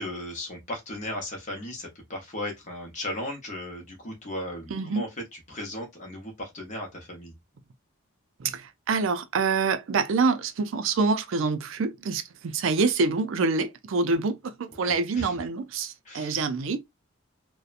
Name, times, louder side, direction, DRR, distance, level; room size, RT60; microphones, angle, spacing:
voice 1, 0.0-5.1 5.5-7.3 14.8-15.3 16.1-16.4, left 1 dB, 35° left, 0.7 m, -36 dB
voice 2, 4.7-5.0 8.4-16.8, right 4 dB, 65° right, 0.4 m, -26 dB
2.7 x 2.1 x 2.4 m
head